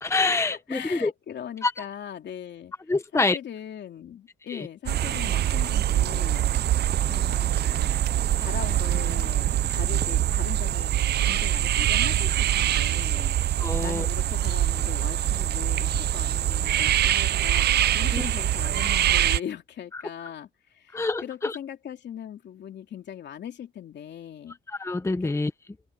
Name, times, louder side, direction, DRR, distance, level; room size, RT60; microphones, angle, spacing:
voice 1, 0.0-1.1 1.6-1.9 2.9-3.4 4.5-4.7 13.6-14.1 18.1-18.2 19.9-20.0 20.9-21.6 24.7-25.5, left 3 dB, 15° left, 1.1 m, -26 dB
voice 2, 0.7-2.7 3.1-6.8 7.1-7.9 8.4-10.9 11.2-13.4 13.8-17.7 17.9-24.6 25.2-25.3, left 9 dB, 60° left, 2.9 m, -39 dB
sound 1, 4.9-19.4, right 12 dB, 55° right, 0.5 m, -24 dB
open air
cardioid pair, 90°, 20 cm